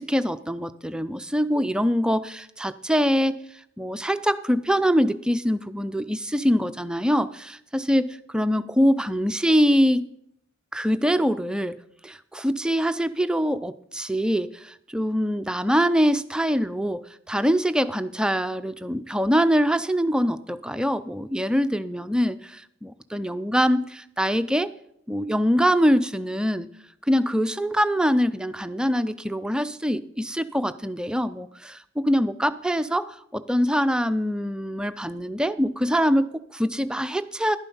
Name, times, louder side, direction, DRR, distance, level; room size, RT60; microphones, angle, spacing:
voice 1, 0.0-3.4 3.8-10.1 10.7-11.8 12.0-24.7 25.1-26.7 27.1-37.6, equal, 5° right, 11 dB, 0.3 m, -24 dB
11.5 x 9.1 x 5.4 m, 0.74 s
head